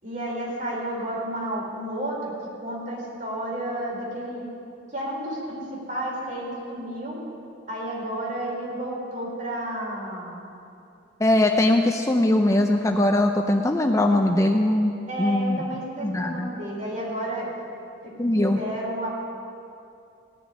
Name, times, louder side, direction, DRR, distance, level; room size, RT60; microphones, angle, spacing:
voice 1, 0.0-4.5 4.9-7.2 7.7-10.4 15.1-17.5 18.0-19.1, right 1 dB, 40° right, -4 dB, 4.3 m, -31 dB
voice 2, 11.2-15.6 16.0-16.5 18.2-18.6, left 1 dB, 15° left, 3 dB, 0.5 m, -21 dB
17.5 x 6.9 x 9.8 m, 2.6 s
head